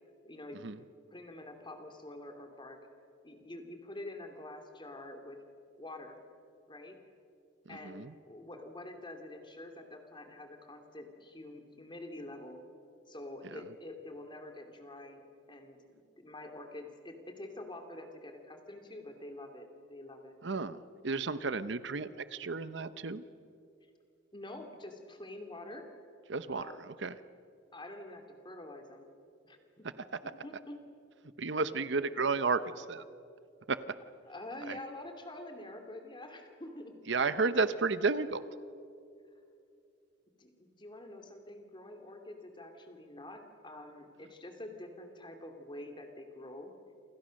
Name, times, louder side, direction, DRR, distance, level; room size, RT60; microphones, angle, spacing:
voice 1, 0.2-2.8 3.2-5.4 5.8-6.2 6.7-7.0 7.7-12.6 13.1-15.2 15.5-20.4 24.3-25.9 26.6-26.8 27.7-29.1 29.4-29.9 30.2-30.8 31.7-31.9 34.3-36.9 40.4-46.7, left 1 dB, 25° left, 4 dB, 2.6 m, -47 dB
voice 2, 7.7-8.1 13.5-13.6 20.4-23.2 26.3-27.2 31.4-33.0 33.7-33.8 34.7-34.8 37.1-38.5, right 4 dB, 65° right, 13 dB, 0.9 m, -32 dB
28.5 x 26.0 x 6.5 m, 2.5 s
head